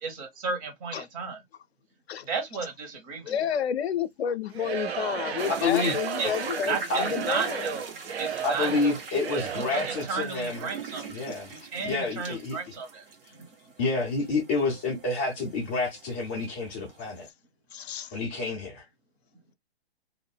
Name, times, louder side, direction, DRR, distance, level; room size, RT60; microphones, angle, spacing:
voice 1, 0.0-1.4 2.2-3.4 5.6-6.4 6.7-13.0 13.4-13.5, right 5 dB, 35° right, 1.0 m, -34 dB
voice 2, 3.2-7.7 8.4-8.5 17.7-18.2, left 9 dB, 80° left, 0.5 m, -31 dB
Singing / Crowd, 4.5-10.2, right 8 dB, 80° right, 0.6 m, -35 dB
sound 1, 5.4-17.3, right 5 dB, 60° right, 1.1 m, -42 dB
voice 3, 5.5-6.0 6.2-6.3 6.9-7.0 8.4-10.7 11.1-11.6 11.8-12.6 13.8-17.3 18.1-18.8, left 3 dB, 10° left, 0.3 m, -28 dB
2.5 x 2.0 x 3.3 m
hypercardioid pair, 135°, 31 cm